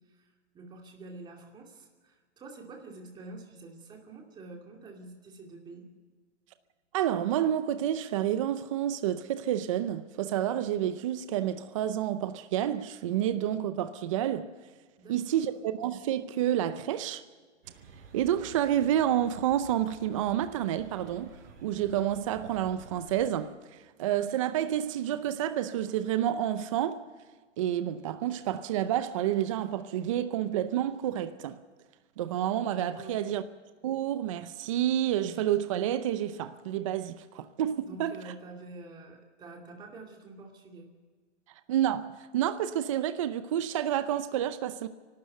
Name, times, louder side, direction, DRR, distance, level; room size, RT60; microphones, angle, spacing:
voice 1, 0.0-5.9 15.0-15.5 32.9-33.4 37.8-40.9, right 2 dB, 10° right, 2.5 m, -47 dB
voice 2, 6.9-14.5 15.1-17.2 18.1-21.3 21.6-23.5 24.0-27.0 27.6-31.6 32.2-33.4 33.8-38.2 41.7-44.9, right 11 dB, 30° right, 0.6 m, -29 dB
sound 1, 17.6-23.3, right 5 dB, 55° right, 4.8 m, -51 dB
28.5 x 12.5 x 7.8 m
hypercardioid pair, 160°, 36 cm